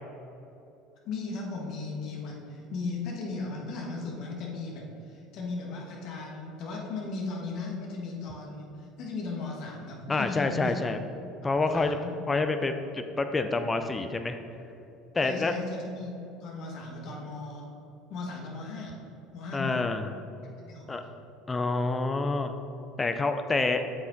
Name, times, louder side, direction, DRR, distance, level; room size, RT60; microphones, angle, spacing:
voice 1, 1.0-10.8 11.6-12.1 15.2-17.7 18.1-19.0 19.3-19.9 20.6-21.1, left 3 dB, 60° left, -1 dB, 1.5 m, -37 dB
voice 2, 10.1-11.0 11.4-12.0 12.3-14.4 15.1-15.5 19.5-20.1 20.9-21.0 21.5-22.5 23.0-23.8, left 3 dB, 20° left, 7 dB, 0.5 m, -27 dB
7.9 x 6.0 x 3.9 m, 2.9 s
hypercardioid pair, 85°, 0 cm